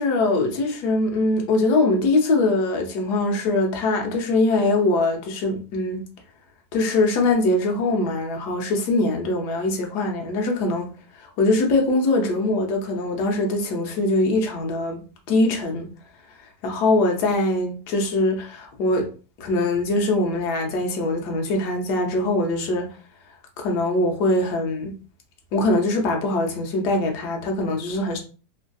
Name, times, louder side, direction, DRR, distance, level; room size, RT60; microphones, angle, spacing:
voice 1, 0.0-6.0 6.7-10.9 11.2-15.0 15.3-15.9 16.6-19.1 19.4-23.0 23.6-24.9 25.5-28.2, left 2 dB, 80° left, 1.2 m, -22 dB
3.2 x 2.5 x 2.2 m
omnidirectional pair, 1.7 m